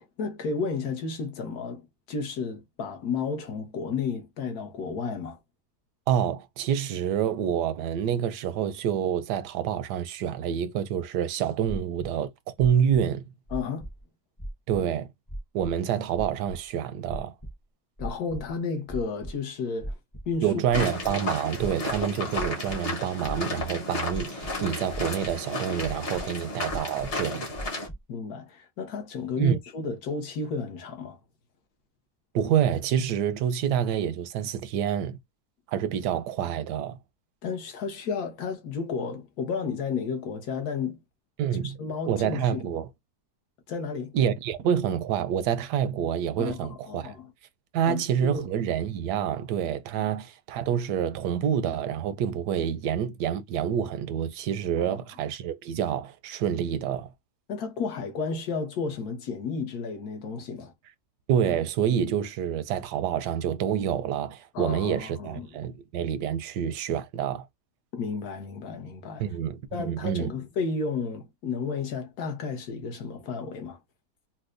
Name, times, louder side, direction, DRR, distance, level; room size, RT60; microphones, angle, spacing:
voice 1, 0.0-5.4 13.5-13.8 18.0-19.9 20.3-20.5 28.1-31.2 37.4-41.0 41.6-42.7 43.7-44.1 46.4-47.3 47.8-48.5 50.0-50.1 54.8-55.0 57.5-60.7 64.5-65.5 67.9-69.2 69.7-73.8, left 5 dB, 70° left, 1.3 m, -32 dB
voice 2, 6.1-13.2 14.7-15.1 15.5-17.3 20.4-27.5 29.4-29.6 32.3-35.2 35.7-37.0 41.4-41.8 42.1-42.9 44.1-47.2 47.7-57.1 61.3-67.5 69.2-70.3, right 9 dB, 85° right, 1.2 m, -27 dB
sound 1, 11.7-12.1 12.6-13.0 13.5-14.0 14.4-14.8 15.3-15.7 16.2-16.6 17.1-17.5 18.0-18.5 18.9-19.3 19.8-20.3 20.7-21.1 21.6-22.8 23.2-23.7 24.1-24.6 24.9-25.4 25.8-26.3 26.7-27.2 27.5-28.0, right 1 dB, 20° left, 0.6 m, -37 dB
sound 2, 20.7-27.9, left 2 dB, 40° left, 1.3 m, -33 dB
4.3 x 2.2 x 2.5 m
omnidirectional pair, 1.7 m